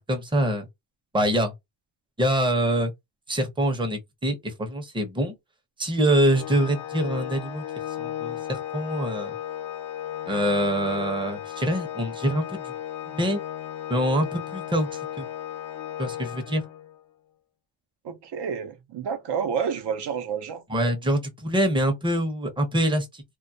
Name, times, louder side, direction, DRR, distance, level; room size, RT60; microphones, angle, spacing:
voice 1, 0.1-0.6 1.1-1.5 2.2-2.9 3.3-5.3 5.8-7.6 8.0-9.3 10.3-12.7 13.1-13.4 13.9-15.3 16.0-16.6 20.7-23.2, right 1 dB, 10° right, 0.6 m, -25 dB
Organ, 6.2-17.0, left 11 dB, 75° left, 0.7 m, -35 dB
voice 2, 18.0-20.6, right 7 dB, 60° right, 0.6 m, -29 dB
2.2 x 2.1 x 2.6 m
cardioid pair, 105°, 46 cm